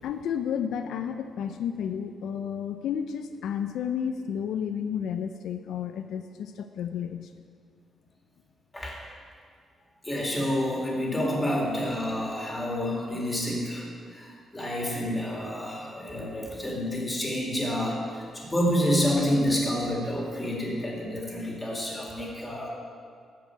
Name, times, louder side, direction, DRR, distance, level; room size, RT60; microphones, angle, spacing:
voice 1, 0.0-7.3, left 8 dB, 80° left, 8 dB, 0.5 m, -32 dB
voice 2, 10.0-13.8 14.1-14.3 14.5-22.7, equal, 10° left, -2 dB, 2.1 m, -28 dB
13.5 x 4.8 x 8.8 m, 2.1 s
cardioid pair, 180°, 0 cm